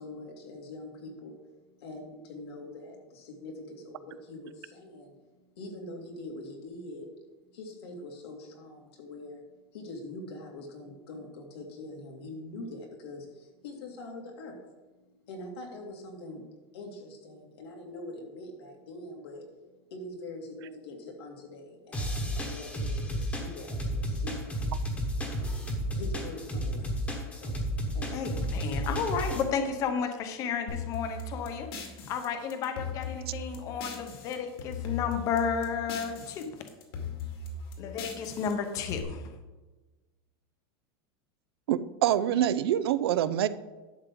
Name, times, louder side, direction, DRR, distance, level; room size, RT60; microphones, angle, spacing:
voice 1, 0.0-5.1 5.6-7.1 7.5-9.4 9.7-14.6 15.3-16.4 16.7-19.5 19.9-24.5 25.6-28.5, left 2 dB, 90° left, 1 dB, 2.6 m, -44 dB
sound 1, 21.9-29.4, equal, 10° left, 1.2 m, -32 dB
voice 2, 28.1-31.7 32.1-36.5 37.8-39.3, left 6 dB, 25° left, 7 dB, 0.8 m, -32 dB
sound 2, 30.7-34.3 34.6-36.4 36.7-39.0, left 5 dB, 70° left, 2.3 m, -38 dB
voice 3, 41.7-43.5, right 11 dB, 75° right, 14 dB, 0.6 m, -25 dB
11.0 x 7.3 x 3.8 m, 1.2 s
supercardioid pair, 175°, 13 cm